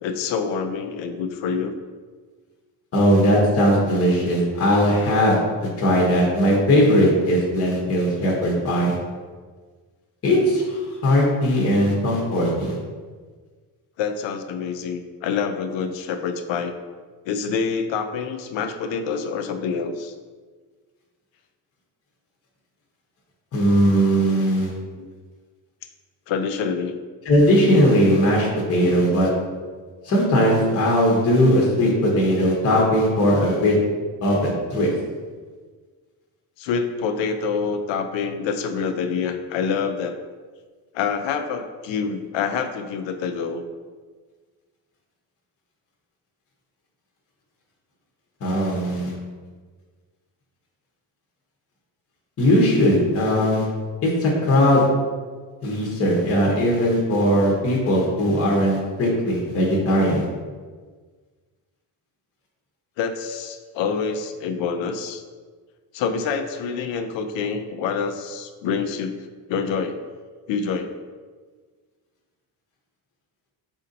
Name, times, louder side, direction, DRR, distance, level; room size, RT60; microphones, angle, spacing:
voice 1, 0.0-1.7 14.0-16.7 17.3-20.2 25.0-25.1 26.3-26.9 36.6-40.2 40.9-43.6 63.0-65.2 65.9-69.2 69.5-70.0 70.5-70.9, left 6 dB, 85° left, 7 dB, 0.5 m, -26 dB
voice 2, 2.9-5.4 5.8-9.0 10.2-12.8 23.5-24.7 27.2-29.3 30.0-33.8 34.2-34.9 48.4-49.1 52.4-53.7 54.0-54.8 55.6-60.3, equal, 30° left, -2 dB, 0.8 m, -19 dB
4.2 x 2.7 x 3.8 m, 1.5 s
cardioid pair, 145°, 44 cm